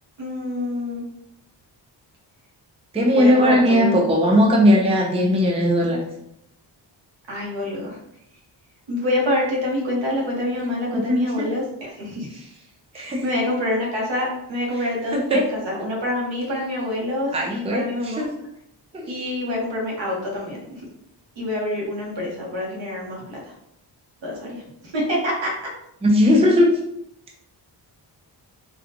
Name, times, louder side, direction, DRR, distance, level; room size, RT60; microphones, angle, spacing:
voice 1, 0.2-1.0 3.1-4.0 7.3-8.0 8.9-12.4 12.9-18.3 19.0-20.8 21.4-23.5 24.2-25.5, left 1 dB, 85° right, -3 dB, 1.2 m, -26 dB
voice 2, 2.9-6.0 10.9-11.5 12.9-13.2 15.1-15.4 17.3-18.3 18.9-19.1 26.0-26.8, equal, 15° right, -1 dB, 0.5 m, -18 dB
3.6 x 2.3 x 2.8 m, 0.77 s
wide cardioid pair, 160°, 43 cm